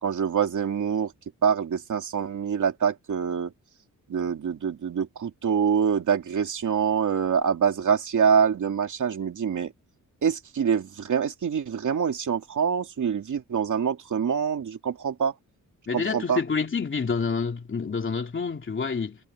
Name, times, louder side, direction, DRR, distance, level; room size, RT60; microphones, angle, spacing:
voice 1, 0.0-1.1 1.4-3.5 4.1-9.7 10.2-15.3 15.9-16.4, right 7 dB, 60° right, 2.7 m, -25 dB
voice 2, 15.9-19.2, left 5 dB, 35° left, 2.9 m, -28 dB
wide cardioid pair, 145°, 34 cm